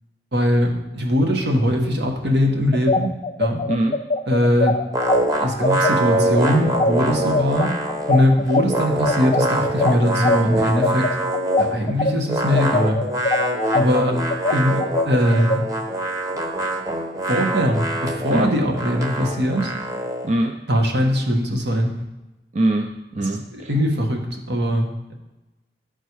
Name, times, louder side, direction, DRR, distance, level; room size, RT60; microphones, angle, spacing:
voice 1, 0.3-3.1 3.4-3.6 4.3-4.8 5.3-7.7 8.1-11.1 11.6-13.0 13.7-15.6 17.3-19.7 20.7-21.9 23.2-25.1, equal, 75° right, 2 dB, 1.5 m, -21 dB
sound 1, 2.7-12.1 12.5-15.6, left 3 dB, 35° left, 0.4 m, -22 dB
voice 2, 3.7-4.0 18.3-18.5 20.2-20.6 22.5-23.7, right 1 dB, 40° right, 4 dB, 0.5 m, -22 dB
sound 2, 4.9-8.2 8.5-11.8 12.3-20.3, right 1 dB, 20° right, 1.0 m, -24 dB
12.0 x 4.4 x 4.7 m, 1.0 s
head